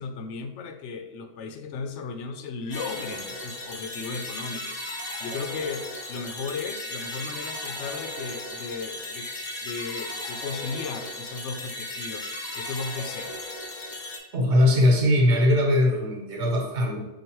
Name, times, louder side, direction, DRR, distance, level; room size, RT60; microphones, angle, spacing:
voice 1, 0.0-4.8 5.2-9.3 9.6-12.3 12.5-13.5, left 4 dB, 85° left, 8 dB, 0.9 m, -35 dB
sound 1, 2.7-14.2, left 2 dB, 40° left, 0.7 m, -36 dB
voice 2, 14.3-17.0, left 1 dB, 80° right, 1 dB, 1.2 m, -20 dB
4.8 x 2.4 x 4.4 m, 0.96 s
omnidirectional pair, 1.2 m